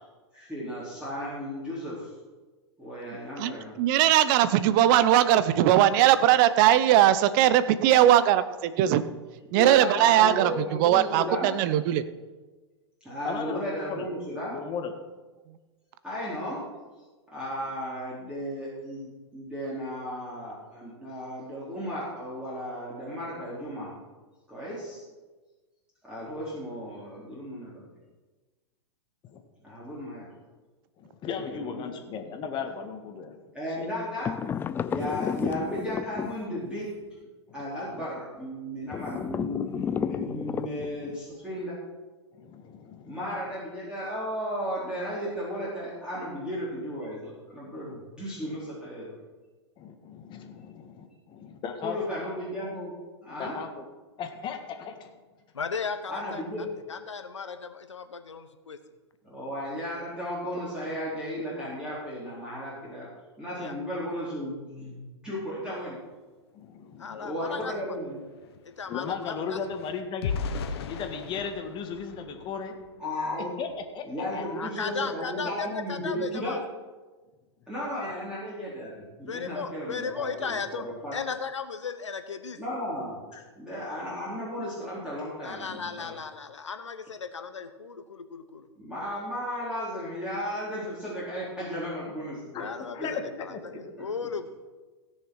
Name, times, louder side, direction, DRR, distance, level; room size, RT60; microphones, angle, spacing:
voice 1, 0.3-2.1 2.8-3.7 9.5-11.5 13.0-14.5 16.0-16.6 17.3-23.9 24.5-25.0 26.0-27.7 29.6-30.3 31.3-32.1 33.5-34.3 34.9-36.9 37.5-41.7 43.0-49.2 51.8-52.9 53.2-53.6 56.1-56.7 59.2-63.1 63.4-65.9 67.2-68.2 73.0-73.5 74.1-76.6 77.7-81.1 82.6-83.2 83.6-86.1 88.8-92.7 93.0-93.1, equal, 5° right, -9 dB, 4.1 m, -34 dB
voice 2, 3.1-9.0 9.5-12.0 15.5-15.6, right 12 dB, 45° right, 14 dB, 0.8 m, -20 dB
voice 3, 13.3-14.1 14.5-14.9 29.3-29.4 31.0-33.4 33.8-33.9 42.3-43.2 49.8-52.0 53.4-53.8 54.2-55.1 66.5-67.2 68.9-70.3 70.9-72.8 73.6-73.7 73.9-74.1 74.3-74.6 78.0-78.1 83.3-83.4 92.5-93.2, left 6 dB, 30° left, 5 dB, 1.7 m, -36 dB
sound 1, 34.2-36.8 38.9-41.2, left 7 dB, 15° left, 0.3 m, -32 dB
voice 4, 55.5-58.8 63.6-63.7 67.0-67.7 68.8-69.6 74.6-76.6 79.3-80.9 81.1-82.6 85.4-88.7 92.6-94.5, left 5 dB, 85° left, 9 dB, 1.1 m, -36 dB
sound 2, 67.3-67.4 67.6-73.1 73.6-73.8 74.2-74.4, left 5 dB, 60° left, 1.3 m, -38 dB
17.0 x 6.6 x 4.9 m, 1.3 s
hypercardioid pair, 105°, 15 cm